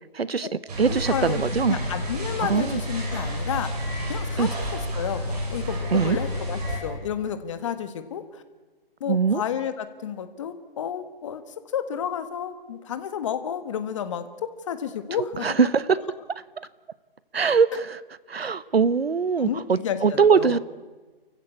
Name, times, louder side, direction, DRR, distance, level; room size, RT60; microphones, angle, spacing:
voice 1, 0.1-0.5 0.8-1.8 2.4-2.8 4.4-4.5 5.9-6.2 9.1-9.4 15.4-16.0 16.6-16.7 17.3-18.0 18.3-20.6, right 5 dB, 80° right, 18 dB, 1.1 m, -22 dB
sound 1, 0.7-6.8, equal, 40° right, 8.0 m, -30 dB
voice 2, 0.9-3.7 4.1-8.4 9.0-11.4 11.7-15.7 19.4-20.6, left 8 dB, 30° left, 11 dB, 1.5 m, -31 dB
29.0 x 15.0 x 8.4 m, 1.3 s
figure-of-eight pair, 155°, 30 cm